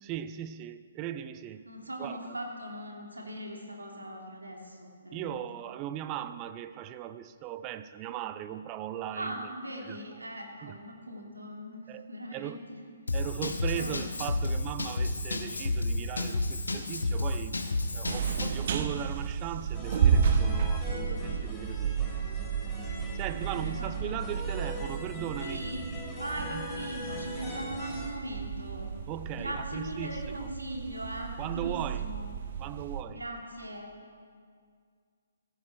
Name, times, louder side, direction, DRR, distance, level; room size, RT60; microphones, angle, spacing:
voice 1, 0.0-1.7 2.0-2.2 5.1-9.5 9.9-10.0 10.6-10.7 11.9-12.0 12.3-12.6 13.1-17.6 17.9-21.9 22.8-25.7 26.5-26.7 29.1-30.5 31.4-32.1 32.6-33.2, right 11 dB, 25° right, 12 dB, 0.5 m, -38 dB
voice 2, 1.6-5.3 9.1-12.8 13.7-13.9 21.2-21.4 23.3-24.3 25.4-28.9 29.3-32.3 33.1-33.9, right 1 dB, 75° right, 0 dB, 3.0 m, -40 dB
Drum kit / Drum, 13.1-18.7, left 2 dB, 70° left, 1.4 m, -31 dB
sound 1, 18.1-33.0, right 7 dB, 45° right, 1.0 m, -32 dB
sound 2, 19.7-28.1, left 1 dB, 10° left, 2.7 m, -41 dB
15.5 x 15.0 x 4.4 m, 2.1 s
figure-of-eight pair, 130°, 0 cm